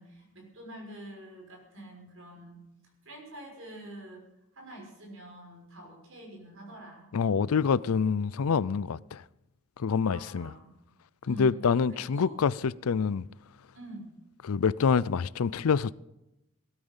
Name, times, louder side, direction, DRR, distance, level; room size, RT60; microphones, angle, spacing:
voice 1, 0.0-2.6 3.0-4.3 4.5-7.1 10.1-10.7 11.2-11.6 11.9-12.3 13.7-14.1, right 1 dB, 70° right, 6.1 m, -46 dB
voice 2, 7.1-9.2 9.8-10.5 11.3-13.2 14.4-15.9, left 6 dB, 85° left, 0.5 m, -26 dB
19.0 x 12.5 x 5.6 m
head